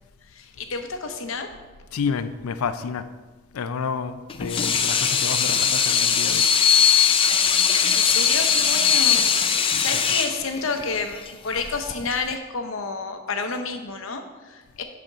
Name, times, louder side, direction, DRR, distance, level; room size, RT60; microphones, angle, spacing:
voice 1, 0.2-1.5 7.7-14.8, left 4 dB, 65° left, 6 dB, 0.8 m, -30 dB
voice 2, 1.9-3.1 3.5-6.6 9.6-9.9, left 5 dB, 85° left, 11 dB, 0.4 m, -30 dB
Water tap faucet / Sink (filling or washing), 4.3-12.3, left 7 dB, 25° left, 0.4 m, -20 dB
7.9 x 4.3 x 6.2 m, 1.3 s
head